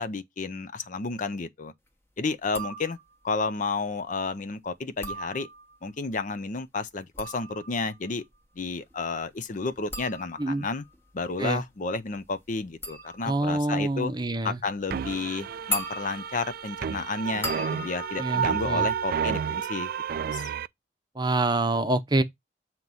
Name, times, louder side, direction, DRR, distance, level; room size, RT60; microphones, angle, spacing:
voice 1, 0.0-1.7 2.2-3.0 3.2-5.5 5.8-8.2 8.6-10.8 11.1-14.1 14.4-20.4, left 4 dB, 45° left, 0.6 m, -31 dB
sound 1, 2.4-3.3 4.8-5.9 6.9-19.6 19.9-20.4, equal, 15° left, 1.1 m, -39 dB
voice 2, 13.2-14.6 18.2-18.9 21.1-22.2, right 2 dB, 25° right, 0.7 m, -26 dB
sound 2, 14.9-20.7, right 8 dB, 55° right, 0.3 m, -30 dB
7.7 x 3.0 x 5.4 m
head